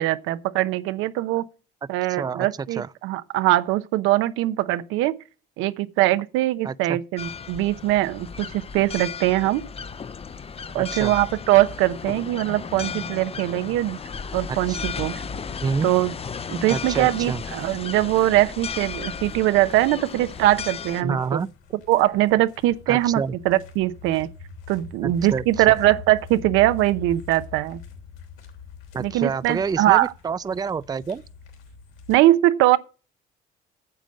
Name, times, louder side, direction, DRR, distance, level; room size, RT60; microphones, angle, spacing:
voice 1, 0.0-1.5 1.9-5.1 5.6-9.6 10.7-14.0 14.3-15.2 15.8-16.1 16.5-21.4 21.9-24.3 24.7-27.8 29.0-30.1 32.1-32.8, right 15 dB, 80° right, 0.8 m, -21 dB
voice 2, 2.1-2.5 2.8-2.9 6.6-7.0 10.8-11.1 14.5-14.8 15.6-15.9 16.7-17.4 21.0-21.5 22.9-23.3 25.0-25.4 28.9-31.2, right 5 dB, 20° right, 0.4 m, -28 dB
sound 1, 7.2-21.0, left 6 dB, 30° left, 0.7 m, -35 dB
sound 2, 16.9-32.2, left 6 dB, 80° left, 3.2 m, -43 dB
9.1 x 7.5 x 6.4 m
supercardioid pair, 80°, 21 cm